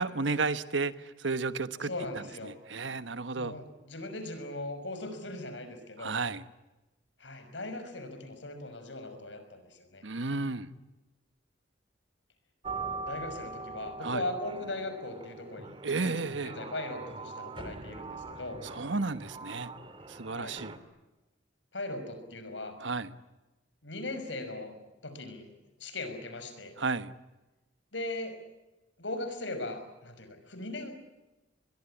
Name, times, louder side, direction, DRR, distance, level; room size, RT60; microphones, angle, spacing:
voice 1, 0.0-1.9 2.5-3.6 6.0-6.4 10.0-10.7 14.0-14.2 15.8-16.5 18.6-19.7 20.1-20.7 22.8-23.1 26.8-27.1, right 4 dB, 90° right, 13 dB, 1.3 m, -32 dB
voice 2, 1.8-2.5 3.4-6.1 7.2-10.0 12.7-16.2 16.4-18.6 20.3-20.6 21.7-22.7 23.8-24.8 25.0-25.5 25.8-26.7 27.9-28.4 29.0-30.9, left 2 dB, 80° left, 8 dB, 5.7 m, -39 dB
sound 1, 12.6-20.8, right 3 dB, 30° right, 2.2 m, -42 dB
24.0 x 22.0 x 9.9 m, 1.0 s
head